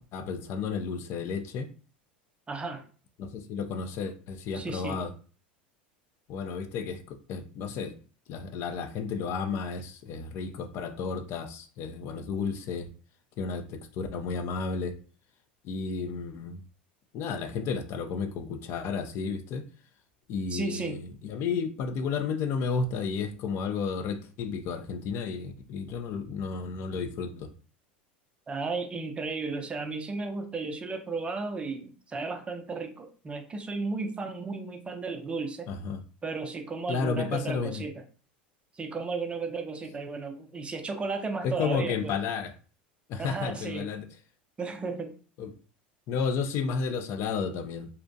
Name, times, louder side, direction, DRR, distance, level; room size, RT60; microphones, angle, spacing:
voice 1, 0.1-1.7 3.2-5.1 6.3-7.9 8.3-12.9 13.4-15.0 15.6-16.6 17.1-19.6 20.3-27.5 35.7-36.0 36.9-37.8 41.4-42.5 43.1-44.1 45.4-45.5 46.1-47.9, left 5 dB, 50° left, 7 dB, 0.4 m, -32 dB
voice 2, 2.5-2.8 4.5-5.0 20.5-21.0 28.5-35.7 36.2-38.0 38.7-42.1 43.2-43.9 44.6-45.2, right 4 dB, 20° right, 6 dB, 0.5 m, -34 dB
2.5 x 2.0 x 2.6 m, 0.39 s
hypercardioid pair, 100°, 6 cm